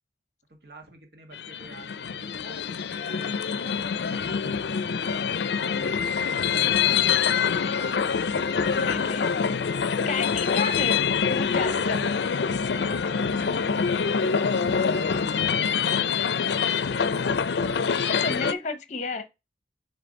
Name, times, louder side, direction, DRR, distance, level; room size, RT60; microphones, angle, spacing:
voice 1, 0.5-4.8 5.6-6.6 11.5-11.9 12.7-16.5, right 2 dB, 65° right, 1.7 m, -47 dB
sound 1, 1.3-18.5, left 6 dB, 70° left, 0.5 m, -25 dB
voice 2, 8.5-9.3 10.1-12.3 18.1-19.3, left 4 dB, 40° left, 0.8 m, -32 dB
6.7 x 3.2 x 5.2 m
head